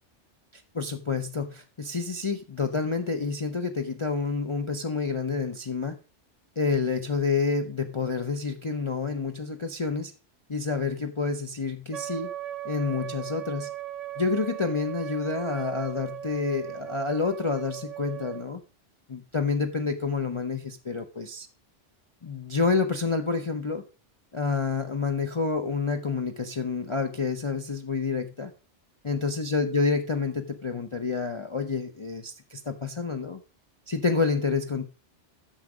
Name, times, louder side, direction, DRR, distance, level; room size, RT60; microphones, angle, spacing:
voice 1, 0.5-6.0 6.6-10.1 10.5-12.3 12.6-13.7 14.2-18.6 19.1-21.5 22.2-23.8 24.3-28.5 29.0-33.4 33.9-34.9, left 4 dB, 30° left, 4 dB, 0.6 m, -28 dB
Wind instrument woodwind instrument, 11.9-18.5, right 12 dB, 45° right, 0.5 m, -37 dB
9.6 x 6.5 x 4.9 m, 0.33 s
omnidirectional pair, 1.2 m